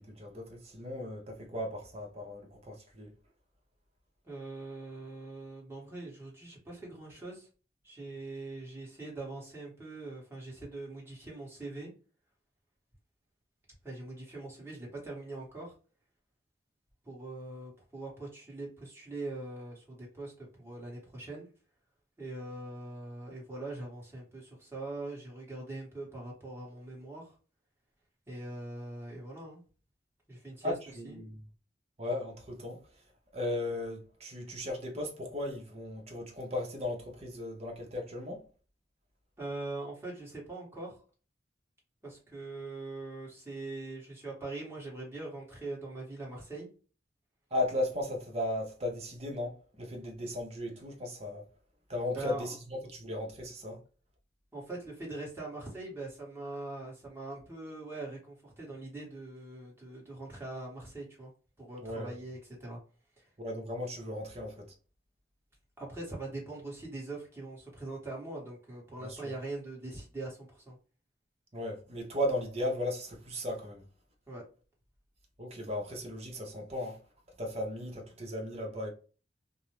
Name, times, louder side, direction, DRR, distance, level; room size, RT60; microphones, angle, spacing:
voice 1, 0.0-3.1 30.6-31.4 32.0-32.8 33.3-38.4 47.5-51.4 51.9-53.8 61.8-62.1 63.4-64.7 69.0-69.3 71.5-73.8 75.4-77.0 77.4-78.9, left 1 dB, 35° right, 0.8 m, -36 dB
voice 2, 4.2-7.5 7.8-11.9 13.8-15.7 17.0-21.5 22.2-27.4 28.3-29.6 30.3-30.7 31.0-31.2 39.4-41.0 42.0-46.7 52.1-52.5 54.5-61.3 61.6-62.8 63.2-63.3 65.8-70.8 74.3-74.4, right 2 dB, 15° right, 1.2 m, -42 dB
2.5 x 2.0 x 2.9 m
head